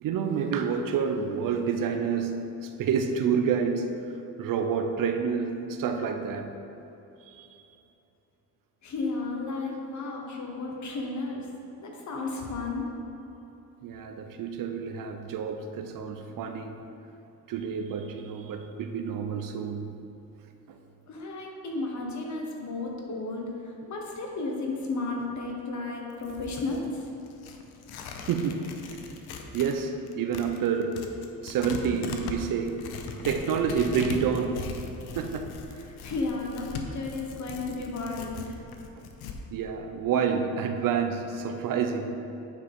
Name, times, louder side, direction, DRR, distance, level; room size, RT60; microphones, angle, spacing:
voice 1, 0.0-4.0 4.4-6.5 7.2-7.5 13.8-16.8 17.5-19.9 20.7-20.8 28.3-28.8 29.5-31.0 31.4-32.8 33.2-34.7 35.1-35.6 39.0-39.1 39.5-42.2, right 6 dB, 60° right, 6 dB, 0.6 m, -28 dB
voice 2, 8.8-11.5 11.8-12.9 21.1-26.8 35.9-38.5, left 3 dB, 50° left, 0 dB, 1.3 m, -33 dB
Tearing, 26.1-29.8 30.1-39.4, left 4 dB, 85° left, 0.7 m, -40 dB
9.2 x 4.8 x 3.6 m, 2.9 s
cardioid pair, 110°, 37 cm